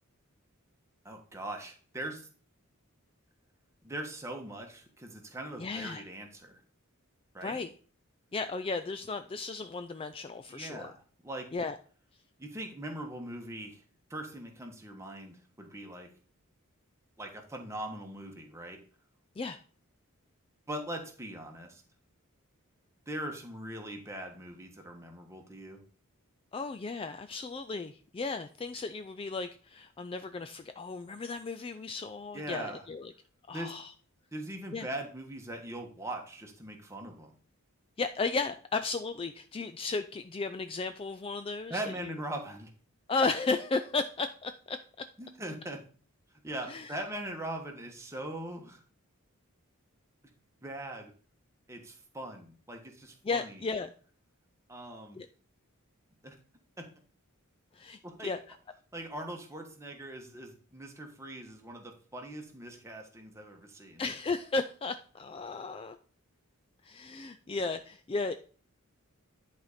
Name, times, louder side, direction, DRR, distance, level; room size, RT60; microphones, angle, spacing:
voice 1, 1.0-2.3 3.8-6.6 7.3-7.6 10.5-10.9 11.2-11.5 12.4-13.8 14.1-16.1 17.2-18.8 20.7-21.8 23.1-25.8 32.3-32.8 33.5-33.7 34.3-37.3 41.7-42.7 45.2-45.8 46.4-48.8 50.6-51.1 51.7-53.6 54.7-55.2 56.2-56.4 56.8-56.9 58.0-58.3 58.9-64.0, right 1 dB, 15° right, 2 dB, 1.3 m, -41 dB
voice 2, 5.6-6.0 7.4-7.7 8.3-10.9 11.5-11.8 19.4-19.6 26.5-33.1 33.5-33.9 34.7-34.9 38.0-42.1 43.1-45.1 46.7-47.0 53.2-53.9 55.2-55.3 57.7-58.4 64.0-66.0 66.8-68.3, left 4 dB, 25° left, 9 dB, 0.3 m, -34 dB
10.5 x 4.1 x 5.0 m, 0.43 s
head